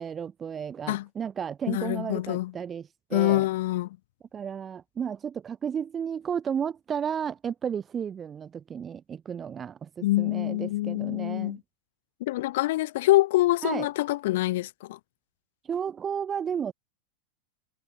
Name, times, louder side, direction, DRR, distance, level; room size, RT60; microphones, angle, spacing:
voice 1, 0.0-3.5 4.3-11.6 13.6-13.9 15.6-16.7, right 7 dB, 20° right, 2.3 m, -33 dB
voice 2, 1.7-2.5 3.1-3.9 10.0-11.6 12.2-15.0, left 17 dB, 55° left, 2.0 m, -25 dB
figure-of-eight pair, 90°, 0 cm